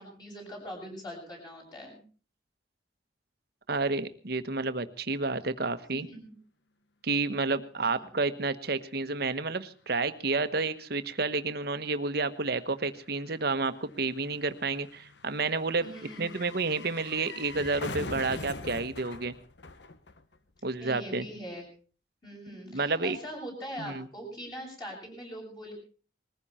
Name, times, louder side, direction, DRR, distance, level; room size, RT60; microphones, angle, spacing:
voice 1, 0.0-2.0 5.9-6.3 15.8-16.4 20.8-21.6 22.2-25.7, equal, 25° left, -1 dB, 7.7 m, -42 dB
voice 2, 3.7-6.1 7.0-15.9 16.2-19.3 20.6-21.3 22.6-23.2 23.8-24.1, right 3 dB, 60° right, 11 dB, 1.2 m, -30 dB
sound 1, 9.9-10.0 10.2-20.6 20.8-20.9, left 3 dB, 75° left, 1.2 m, -44 dB
21.0 x 15.0 x 4.3 m, 0.40 s
head